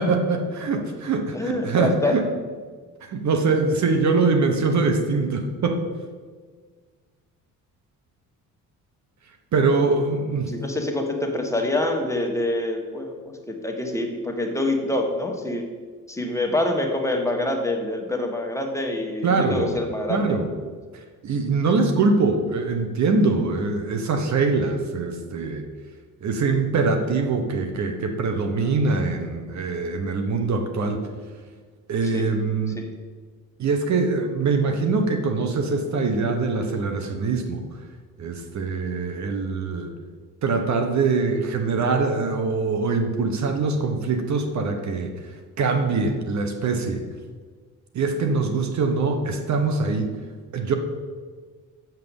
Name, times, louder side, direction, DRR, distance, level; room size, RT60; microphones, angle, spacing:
voice 1, 0.0-2.2 3.0-5.8 9.5-10.5 19.2-19.7 20.1-20.5 20.9-25.6 26.2-31.0 31.9-32.8 33.6-37.6 38.2-39.9 40.4-47.0 47.9-50.1 50.5-50.8, right 4 dB, 55° right, 5 dB, 1.2 m, -23 dB
voice 2, 1.3-2.2 10.5-15.6 16.1-20.4 32.0-32.3 32.7-32.9, left 1 dB, 10° left, 2 dB, 1.6 m, -26 dB
7.6 x 5.8 x 7.2 m, 1.6 s
cardioid pair, 85°, 33 cm